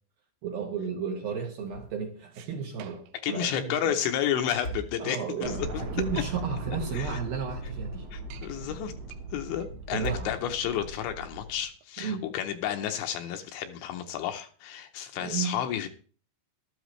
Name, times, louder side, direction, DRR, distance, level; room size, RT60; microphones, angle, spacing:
voice 1, 0.4-4.0 5.0-8.1 9.9-10.4 12.0-12.3 15.2-15.6, right 6 dB, 70° right, 2 dB, 2.4 m, -33 dB
sound 1, 1.6-2.1 2.4-2.5 4.4-5.4 7.1-8.0 9.9-10.8, right 1 dB, 50° left, 1.3 m, -40 dB
sound 2, 2.2-3.3 3.6-3.7 3.9-4.8 5.6-5.7 6.0-6.6 7.1-7.2 7.5-7.6 8.0-8.5 9.0-11.9, right 11 dB, 85° right, 3.4 m, -50 dB
voice 2, 3.2-5.5 6.1-6.2 6.9-7.1 8.1-8.9 9.3-15.9, left 10 dB, 75° left, 6 dB, 2.9 m, -31 dB
sound 3, 5.4-11.6, right 2 dB, 55° right, 1.8 m, -38 dB
13.0 x 13.0 x 3.2 m, 0.42 s
omnidirectional pair, 5.7 m